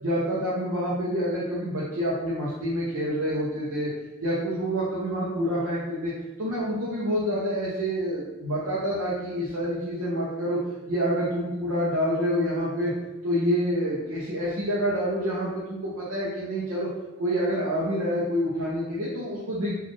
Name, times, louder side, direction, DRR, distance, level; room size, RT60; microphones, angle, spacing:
voice 1, 0.0-3.9 4.2-6.1 6.4-10.6 10.9-12.9 13.2-16.9 17.2-19.7, equal, 75° right, -8 dB, 0.8 m, -27 dB
4.1 x 2.5 x 3.1 m, 1.1 s
head